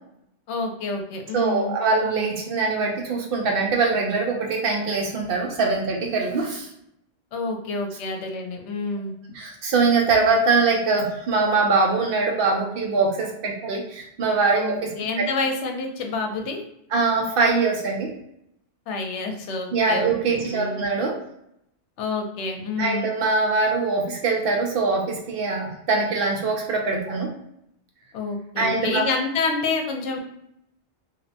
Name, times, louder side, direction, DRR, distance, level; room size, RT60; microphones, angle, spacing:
voice 1, 0.5-1.7 7.3-9.1 14.6-16.6 18.9-20.9 22.0-23.1 28.1-30.2, left 3 dB, 85° left, 3 dB, 0.9 m, -28 dB
voice 2, 1.3-6.7 9.3-14.9 15.2-15.3 16.9-18.1 19.7-21.2 22.8-27.3 28.6-29.0, right 4 dB, 60° right, 0 dB, 0.7 m, -23 dB
2.5 x 2.1 x 2.6 m, 0.77 s
omnidirectional pair, 1.2 m